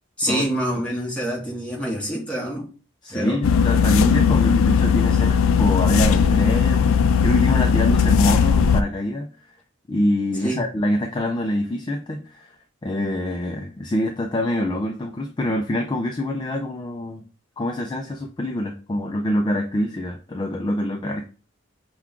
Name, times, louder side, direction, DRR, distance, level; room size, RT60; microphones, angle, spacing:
voice 1, 0.2-2.7 3.1-3.4 10.4-10.6, right 1 dB, 5° left, 1.2 m, -26 dB
voice 2, 3.0-9.3 9.9-12.5 12.8-17.2 17.6-21.2, left 1 dB, 20° left, 0.4 m, -25 dB
sound 1, 3.4-8.8, left 6 dB, 90° left, 0.4 m, -18 dB
6.0 x 2.3 x 3.6 m
head